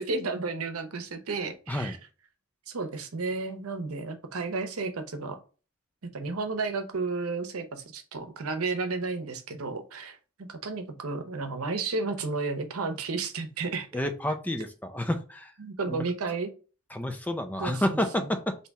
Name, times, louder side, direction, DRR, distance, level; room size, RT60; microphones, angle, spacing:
voice 1, 0.0-2.0 2.7-5.4 6.0-14.0 15.6-16.5 17.6-18.3, right 3 dB, 90° right, 8 dB, 0.8 m, -32 dB
voice 2, 13.9-15.5 15.9-16.0 16.9-18.5, left 1 dB, 10° left, 7 dB, 0.4 m, -29 dB
3.5 x 2.8 x 4.0 m, 0.36 s
head